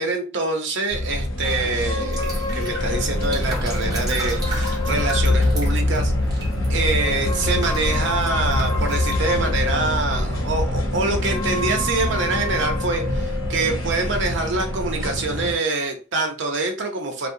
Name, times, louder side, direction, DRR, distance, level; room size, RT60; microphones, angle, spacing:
voice 1, 0.0-17.3, right 3 dB, 65° right, 3 dB, 0.6 m, -25 dB
sound 1, 0.9-15.5, left 1 dB, 85° left, 0.7 m, -24 dB
sound 2, 1.8-6.0 6.8-10.2 11.0-15.4, left 3 dB, 20° left, 0.4 m, -33 dB
sound 3, 2.0-9.2, equal, 20° right, 0.7 m, -32 dB
2.7 x 2.1 x 2.6 m, 0.34 s
head